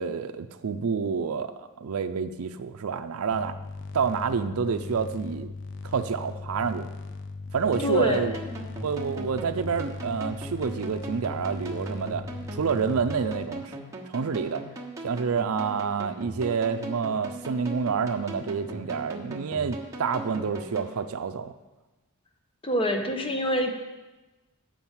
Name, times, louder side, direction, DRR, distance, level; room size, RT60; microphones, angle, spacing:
voice 1, 0.0-3.5 3.9-5.5 5.8-6.9 7.5-8.3 8.8-12.3 12.5-13.8 14.1-14.6 15.0-21.5, right 5 dB, 70° right, 9 dB, 0.5 m, -28 dB
sound 1, 3.3-13.5, left 3 dB, 60° left, 0.5 m, -39 dB
sound 2, 7.7-21.0, right 2 dB, 15° right, 1.1 m, -40 dB
voice 2, 7.8-8.4 22.6-23.7, equal, 25° left, 4 dB, 0.9 m, -26 dB
7.6 x 6.0 x 7.2 m, 1.1 s
head